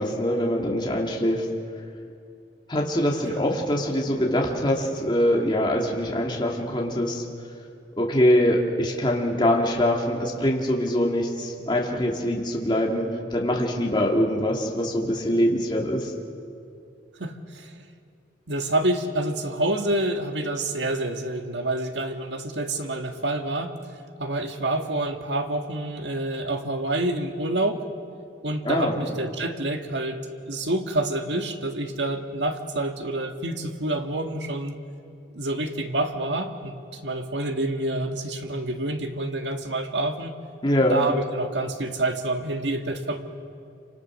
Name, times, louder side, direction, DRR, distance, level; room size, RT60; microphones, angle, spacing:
voice 1, 0.0-1.5 2.7-7.2 8.0-13.0 13.3-16.1 28.6-29.0 40.6-41.0, equal, 25° left, -1 dB, 2.7 m, -23 dB
voice 2, 17.2-17.7 18.5-23.7 24.2-27.8 28.4-34.8 35.3-36.8 37.0-40.3 40.9-43.2, right 1 dB, 85° right, 5 dB, 1.8 m, -27 dB
28.0 x 25.0 x 6.5 m, 2.4 s
head